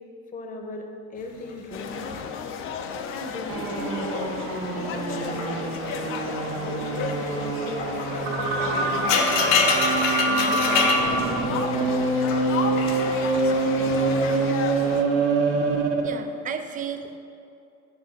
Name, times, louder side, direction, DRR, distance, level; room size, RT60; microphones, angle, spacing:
voice 1, 0.3-0.9 1.1-2.3 3.1-4.2 4.7-5.7 5.9-9.9 10.3-11.2, left 1 dB, 25° left, 3 dB, 0.8 m, -37 dB
sound 1, 1.5-3.9 4.2-4.6 5.0-14.3, left 5 dB, 75° left, 1.0 m, -29 dB
sound 2, 1.7-15.0, left 6 dB, 40° left, 0.5 m, -33 dB
sound 3, 3.5-16.2, right 3 dB, 45° right, 1.1 m, -25 dB
voice 2, 15.5-17.2, right 7 dB, 25° right, 8 dB, 0.3 m, -34 dB
9.8 x 3.7 x 5.2 m, 2.6 s
cardioid pair, 135°, 33 cm